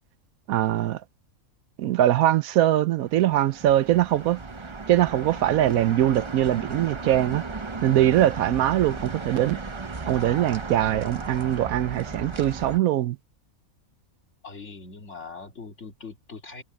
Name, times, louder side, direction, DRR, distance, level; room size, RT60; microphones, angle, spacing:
voice 1, 0.5-1.0 1.8-4.4 4.9-7.4 7.8-9.6 10.1-13.2, right 13 dB, 85° right, 1.1 m, -22 dB
sound 1, 3.0-12.8, right 3 dB, 25° right, 0.8 m, -36 dB
voice 2, 14.4-16.6, left 4 dB, 55° left, 2.9 m, -41 dB
omnidirectional pair, 1.5 m